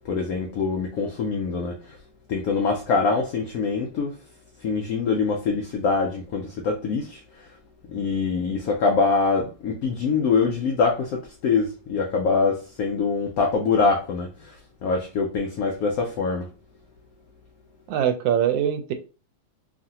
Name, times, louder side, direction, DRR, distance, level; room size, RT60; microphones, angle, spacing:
voice 1, 0.1-2.0 2.3-4.2 4.6-7.5 7.9-16.5, left 4 dB, 80° left, 0.8 m, -24 dB
voice 2, 17.9-18.9, right 9 dB, 80° right, 1.2 m, -22 dB
3.1 x 2.5 x 2.7 m
omnidirectional pair, 2.1 m